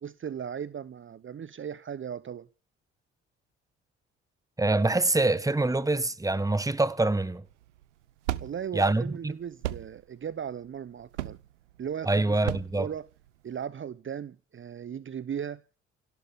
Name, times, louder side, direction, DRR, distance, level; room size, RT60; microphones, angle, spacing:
voice 1, 0.0-2.5 8.4-11.4 11.8-13.1 13.4-15.6, right 8 dB, 35° right, 0.9 m, -37 dB
voice 2, 4.6-7.4 8.7-9.3 12.1-12.9, right 2 dB, 10° right, 1.4 m, -25 dB
sound 1, 7.5-13.6, right 15 dB, 80° right, 0.8 m, -37 dB
29.0 x 12.0 x 3.8 m
hypercardioid pair, 50°, 35 cm